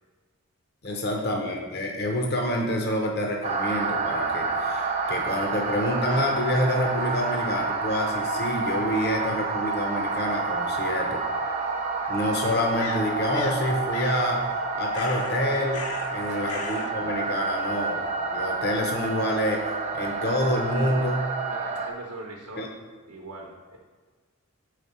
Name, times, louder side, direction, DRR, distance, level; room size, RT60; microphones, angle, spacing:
voice 1, 0.8-11.2 12.1-14.5 14.7-21.3 22.6-22.7, left 1 dB, 45° left, 0 dB, 0.7 m, -27 dB
sound 1, 3.4-21.9, right 4 dB, 30° right, 0.4 m, -29 dB
voice 2, 10.7-11.2 16.3-16.5 21.5-22.7 23.1-23.8, right 2 dB, 80° right, -1 dB, 0.8 m, -42 dB
sound 2, 12.8-13.6 13.9-14.2 14.9-15.4 15.7-16.2 16.5-16.9, left 6 dB, 85° left, 0.5 m, -36 dB
5.0 x 3.7 x 5.5 m, 1.4 s
head